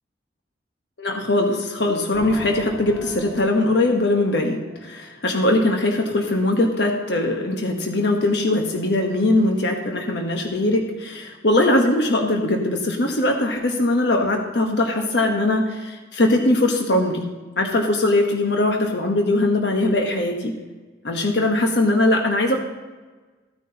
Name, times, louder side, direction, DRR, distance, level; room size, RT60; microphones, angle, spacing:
voice 1, 1.0-17.3 17.6-20.5 21.0-22.6, left 2 dB, 70° left, 2 dB, 1.1 m, -21 dB
sound 1, 2.1-5.9, equal, 10° right, 2.5 m, -41 dB
14.5 x 9.4 x 2.9 m, 1.3 s
head